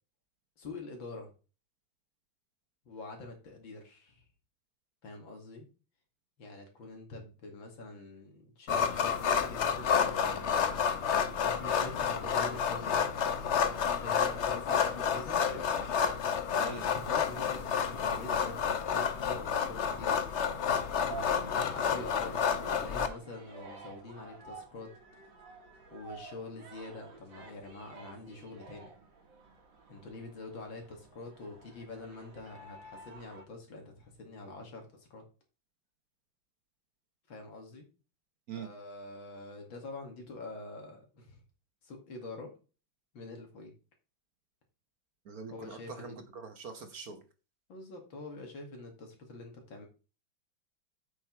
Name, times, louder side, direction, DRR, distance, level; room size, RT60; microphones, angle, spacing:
voice 1, 0.6-1.3 2.9-4.2 5.0-5.7 6.4-10.8 11.4-13.1 13.7-15.7 16.8-20.2 21.0-24.9 25.9-28.9 29.9-35.2 37.3-37.9 38.5-41.4 41.8-42.5 43.1-43.7 45.5-46.2 47.7-49.9, left 2 dB, 75° left, 3 dB, 2.9 m, -45 dB
sound 1, 8.7-23.1, left 7 dB, 60° left, 0.7 m, -30 dB
sound 2, 21.0-33.4, right 4 dB, 70° right, 2.3 m, -50 dB
voice 2, 45.2-47.2, right 5 dB, 55° right, 7 dB, 1.3 m, -43 dB
8.2 x 6.2 x 4.4 m, 0.34 s
omnidirectional pair, 2.2 m